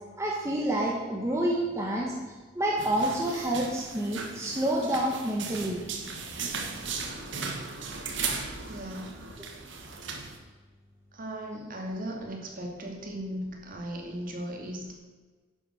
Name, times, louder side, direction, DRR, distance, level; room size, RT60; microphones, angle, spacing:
voice 1, 0.2-2.1 2.5-5.8, right 1 dB, 15° right, -2 dB, 1.4 m, -28 dB
sound 1, 2.8-10.4, right 5 dB, 65° right, 1.6 m, -37 dB
voice 2, 8.7-9.2 11.1-14.9, equal, 45° right, 0 dB, 2.5 m, -37 dB
10.5 x 7.9 x 6.4 m, 1.3 s
head